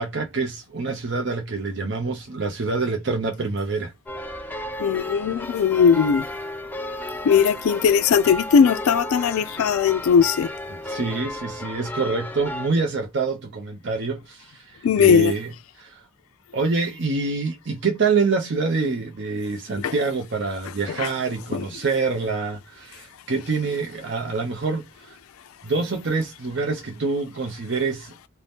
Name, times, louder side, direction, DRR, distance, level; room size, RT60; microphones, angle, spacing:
voice 1, 0.0-3.9 4.3-4.8 10.8-15.5 15.8-16.0 16.5-25.2 25.6-28.1, right 4 dB, 55° right, 0.6 m, -26 dB
sound 1, 4.1-12.7, left 1 dB, 10° left, 0.4 m, -33 dB
voice 2, 4.8-6.2 7.2-10.5 14.8-15.3 19.8-19.9 20.9-21.1 21.5-21.7, left 7 dB, 80° left, 0.3 m, -19 dB
2.7 x 2.1 x 3.3 m
head